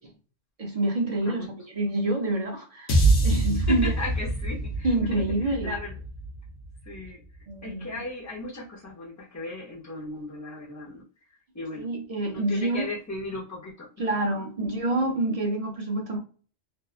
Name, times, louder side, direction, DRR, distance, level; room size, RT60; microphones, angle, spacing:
voice 1, 0.6-2.9 3.2-3.9 4.8-5.7 7.5-7.9 11.8-12.9 14.0-16.2, right 2 dB, 50° right, 0.5 m, -27 dB
sound 1, 2.9-7.2, right 2 dB, 55° left, 0.8 m, -25 dB
voice 2, 3.7-6.0 6.8-7.2 7.6-11.0 11.5-11.9 12.2-14.1, left 2 dB, 25° left, 0.3 m, -36 dB
2.6 x 2.2 x 2.3 m
omnidirectional pair, 1.2 m